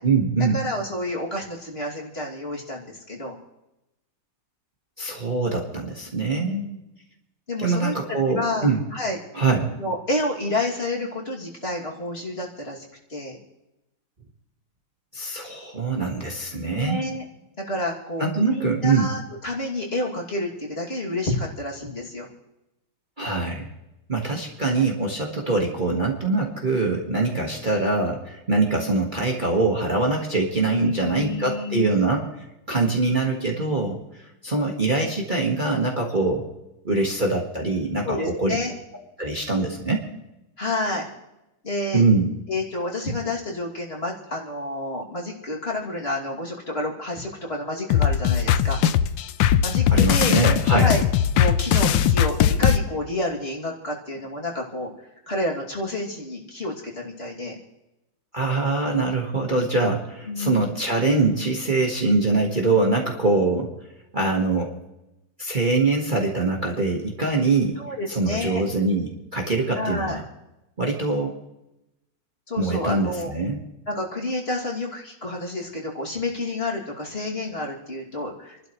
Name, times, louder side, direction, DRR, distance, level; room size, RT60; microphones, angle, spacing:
voice 1, 0.0-0.6 5.0-6.6 7.6-8.8 9.3-9.7 15.1-17.0 18.2-19.1 23.2-23.7 24.1-32.3 32.7-36.4 36.8-38.6 39.2-40.1 41.9-42.3 49.9-50.9 58.3-63.7 64.1-64.7 65.4-67.8 68.1-70.2 70.8-71.3 72.6-73.6, right 3 dB, 25° right, 0 dB, 1.6 m, -23 dB
voice 2, 0.5-3.4 6.3-6.8 7.5-9.2 9.8-12.8 13.1-13.4 16.7-17.2 17.6-22.3 24.7-24.8 30.8-32.0 38.0-38.7 40.6-41.1 41.6-42.0 42.5-48.8 49.6-50.4 50.8-51.0 51.3-54.9 55.3-57.6 60.3-60.7 67.8-68.6 69.7-70.2 72.5-73.3 73.9-78.7, left 2 dB, 30° left, -2 dB, 2.8 m, -29 dB
sound 1, 47.9-52.8, left 9 dB, 85° left, 1.4 m, -19 dB
28.5 x 12.0 x 3.1 m, 0.92 s
omnidirectional pair, 2.0 m